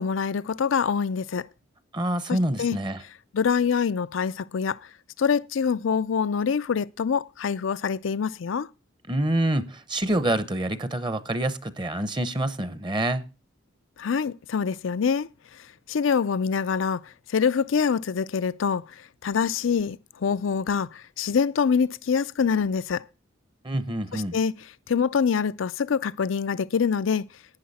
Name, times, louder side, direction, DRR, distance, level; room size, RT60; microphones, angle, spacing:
voice 1, 0.0-1.5 2.3-2.8 3.3-4.8 5.2-8.7 14.0-15.3 15.9-23.0 24.1-24.6 24.9-27.2, left 6 dB, 85° left, 0.5 m, -25 dB
voice 2, 1.9-3.0 9.1-13.2 23.6-24.4, right 1 dB, 25° right, 0.8 m, -26 dB
11.5 x 9.4 x 4.1 m
head